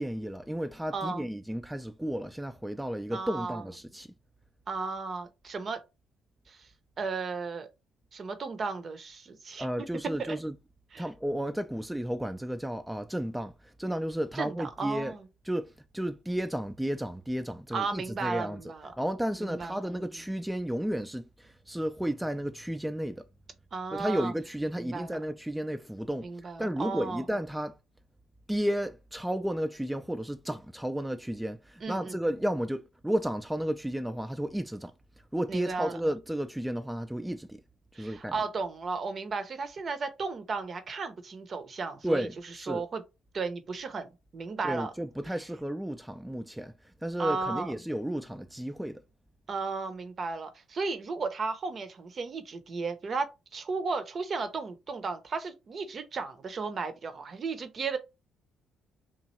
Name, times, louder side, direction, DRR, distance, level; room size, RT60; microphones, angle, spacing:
voice 1, 0.0-4.1 9.6-10.5 11.0-15.1 15.4-18.6 19.0-23.3 23.9-26.3 26.6-27.8 28.5-34.9 35.3-37.6 38.0-38.4 42.0-42.8 44.6-49.0, equal, 5° right, 0.3 m, -33 dB
voice 2, 0.9-1.2 3.1-3.6 4.7-5.8 6.5-6.7 7.0-7.7 8.1-9.9 10.2-10.4 10.9-11.0 14.4-15.3 17.7-18.9 19.4-20.1 23.7-24.3 24.8-25.2 26.2-27.2 31.8-32.2 35.5-36.0 37.9-42.3 42.7-43.0 43.3-44.9 47.2-47.7 49.5-53.3 53.5-58.0, right 4 dB, 45° right, 0.6 m, -34 dB
3.0 x 2.4 x 3.0 m
hypercardioid pair, 50°, 0 cm